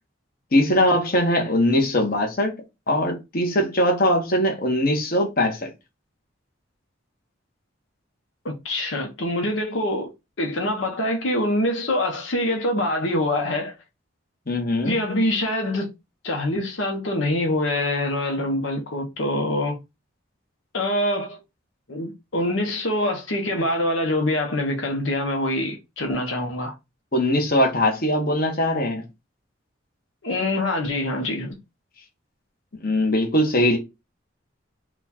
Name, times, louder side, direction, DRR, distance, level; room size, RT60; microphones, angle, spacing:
voice 1, 0.5-2.5 2.9-5.7 14.5-15.0 27.1-29.0 32.8-33.8, left 1 dB, 50° left, 1.1 m, -21 dB
voice 2, 8.4-10.1 10.4-13.7 14.8-15.9 16.2-19.8 20.7-21.4 21.9-26.7 30.2-31.6, left 1 dB, 75° left, 1.0 m, -25 dB
4.2 x 2.4 x 4.2 m
head